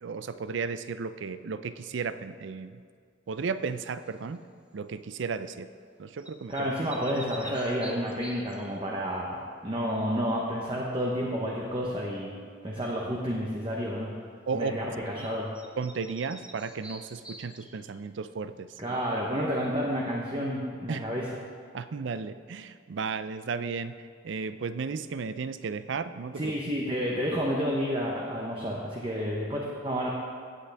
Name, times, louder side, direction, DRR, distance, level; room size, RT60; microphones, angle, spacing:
voice 1, 0.0-2.8 3.3-4.4 4.7-5.7 6.0-6.7 14.5-15.3 15.8-19.0 20.9-21.1 21.7-23.9 24.2-26.5, right 5 dB, 65° right, 13 dB, 0.4 m, -34 dB
sound 1, 4.0-4.4 6.2-8.8 15.2-15.3 15.5-18.0, right 1 dB, 5° right, 0.6 m, -47 dB
voice 2, 6.5-12.3 12.6-14.1 14.5-15.5 18.8-21.2 26.4-30.1, equal, 25° right, -3 dB, 0.9 m, -30 dB
16.0 x 8.3 x 3.4 m, 2.1 s
head